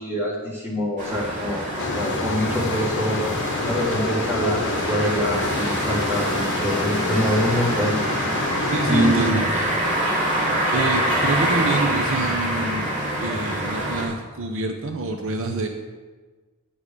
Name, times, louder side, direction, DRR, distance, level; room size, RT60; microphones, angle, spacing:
voice 1, 0.0-1.7 1.9-3.3 3.6-8.0 8.9-9.4, equal, 10° right, -8 dB, 3.8 m, -25 dB
sound 1, 1.0-14.0, right 1 dB, 35° right, 2.9 m, -25 dB
sound 2, 1.8-9.3, left 3 dB, 55° left, 0.9 m, -29 dB
voice 2, 8.7-9.7 10.7-12.9 13.2-15.7, right 3 dB, 65° right, 4 dB, 0.8 m, -26 dB
10.5 x 8.4 x 5.1 m, 1.3 s
head